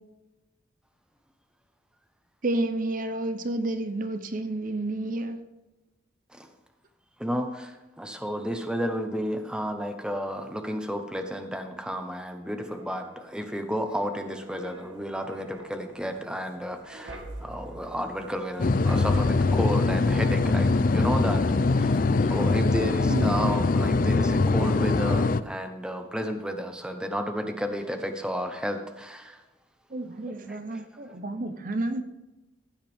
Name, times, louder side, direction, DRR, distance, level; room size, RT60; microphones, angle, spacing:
voice 1, 2.4-5.4 23.1-23.6 29.9-32.0, right 2 dB, 45° right, 9 dB, 0.7 m, -30 dB
voice 2, 7.2-21.4 21.7-22.0 22.3-29.4 30.5-30.8, equal, 5° right, 6 dB, 1.0 m, -32 dB
sound 1, 12.4-24.7 25.1-25.3, right 1 dB, 65° right, 2.0 m, -46 dB
sound 2, 18.6-25.4, left 3 dB, 45° left, 0.4 m, -23 dB
15.5 x 8.8 x 3.6 m, 1.1 s
head